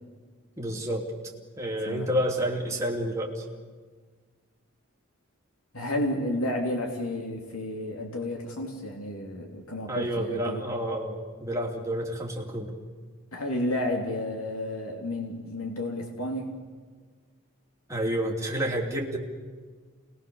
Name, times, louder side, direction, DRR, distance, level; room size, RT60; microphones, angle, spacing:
voice 1, 0.6-1.1 1.6-3.4 9.9-12.7 17.9-19.2, right 1 dB, 15° right, -1 dB, 3.1 m, -29 dB
voice 2, 5.7-10.6 13.3-16.5, left 1 dB, 85° left, 1 dB, 3.0 m, -31 dB
28.5 x 21.0 x 7.1 m, 1.5 s
head